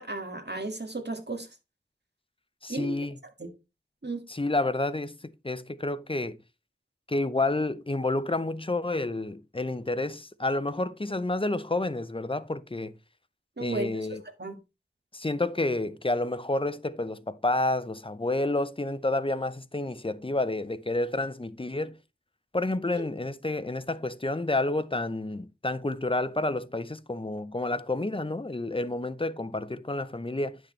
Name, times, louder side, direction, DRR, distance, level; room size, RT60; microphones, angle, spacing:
voice 1, 0.0-1.5 2.7-3.0 3.4-3.5 4.0-4.2 13.6-14.6 22.9-23.0, right 2 dB, 55° right, 1.8 m, -35 dB
voice 2, 2.6-3.2 4.3-6.4 7.1-12.9 13.6-14.2 15.1-22.0 22.5-30.6, left 2 dB, 25° left, 0.6 m, -29 dB
10.0 x 6.4 x 3.2 m
wide cardioid pair, 40°, 20 cm